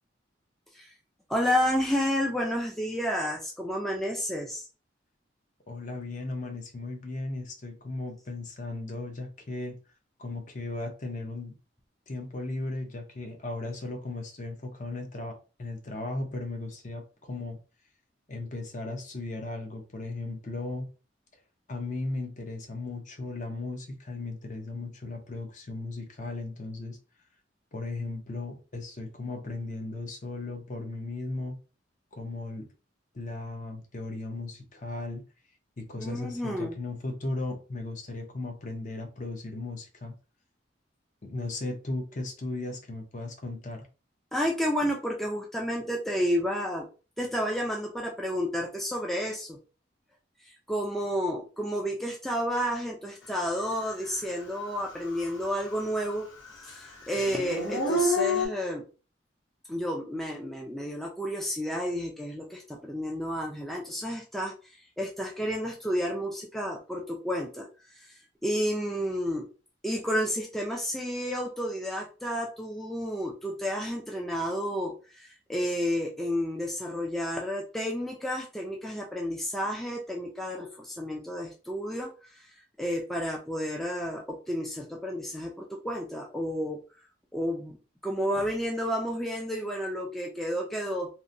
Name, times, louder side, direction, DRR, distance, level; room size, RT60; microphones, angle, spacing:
voice 1, 1.3-4.6 36.0-36.7 44.3-46.9 47.2-49.6 50.4-56.3 56.6-58.8 59.7-67.7 67.9-69.5 69.8-86.8 87.3-87.8 88.0-91.1, equal, ahead, -1 dB, 0.4 m, -31 dB
voice 2, 5.7-9.8 10.2-11.5 12.1-17.6 18.3-20.9 21.7-27.0 27.7-31.6 32.1-32.7 33.1-35.2 35.8-40.2 41.2-43.9, left 2 dB, 40° left, 3 dB, 0.6 m, -36 dB
Dog / Siren, 54.1-54.2 54.7-56.1 56.4-58.5, left 1 dB, 85° left, 1.0 m, -29 dB
2.9 x 2.1 x 2.5 m, 0.34 s
head